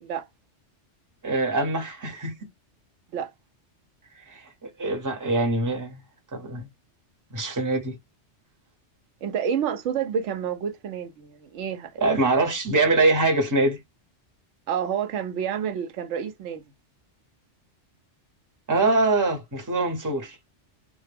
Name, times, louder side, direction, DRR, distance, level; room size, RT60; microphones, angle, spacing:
voice 1, 1.2-2.3 4.3-4.4 4.8-6.0 6.3-6.7 7.3-8.0 12.0-13.8 18.7-20.4, right 2 dB, 20° right, 0.8 m, -23 dB
voice 2, 9.2-12.0 14.7-16.6, right 8 dB, 85° right, 0.9 m, -29 dB
2.2 x 2.1 x 3.2 m
omnidirectional pair, 1.2 m